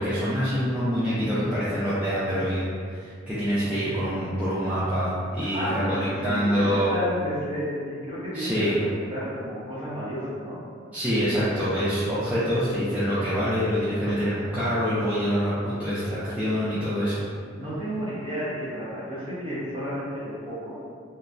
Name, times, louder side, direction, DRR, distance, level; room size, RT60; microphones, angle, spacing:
voice 1, 0.0-6.9 8.3-8.8 10.9-17.2, equal, 5° right, -12 dB, 0.4 m, -26 dB
voice 2, 5.5-10.6 17.5-20.8, equal, 30° right, -10 dB, 0.9 m, -31 dB
3.0 x 2.1 x 2.4 m, 2.1 s
head